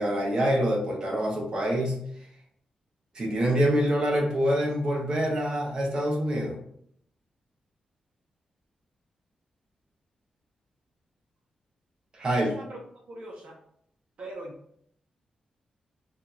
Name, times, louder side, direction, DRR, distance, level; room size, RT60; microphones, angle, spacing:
voice 1, 0.0-2.0 3.1-6.6 12.1-12.5, equal, 35° right, -2 dB, 0.9 m, -25 dB
voice 2, 12.4-13.6 14.2-14.5, right 2 dB, 60° right, -3 dB, 0.7 m, -41 dB
2.7 x 2.4 x 4.0 m, 0.68 s
wide cardioid pair, 160°, 2 cm